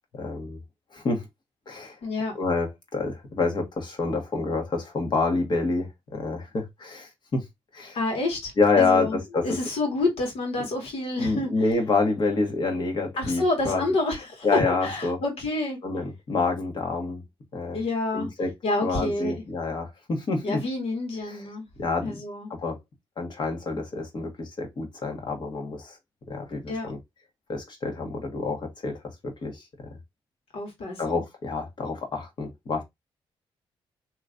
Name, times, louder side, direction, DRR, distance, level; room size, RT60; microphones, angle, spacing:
voice 1, 0.1-0.6 0.9-1.2 1.7-2.0 2.3-7.4 7.7-8.0 8.6-9.6 11.2-13.8 14.4-15.2 15.8-17.2 17.5-17.8 18.1-18.5 18.8-20.6 21.3-21.4 21.8-22.2 22.6-22.8 23.2-26.0 26.3-27.0 27.5-29.6 31.0-32.8, left 3 dB, 50° left, 1.4 m, -27 dB
voice 2, 2.0-2.3 7.9-11.5 13.2-15.8 17.7-18.3 18.6-19.4 20.4-21.6 22.0-22.5 26.7-26.9 30.5-31.2, left 2 dB, 75° left, 1.7 m, -28 dB
3.1 x 2.9 x 2.5 m
cardioid pair, 80°, 10 cm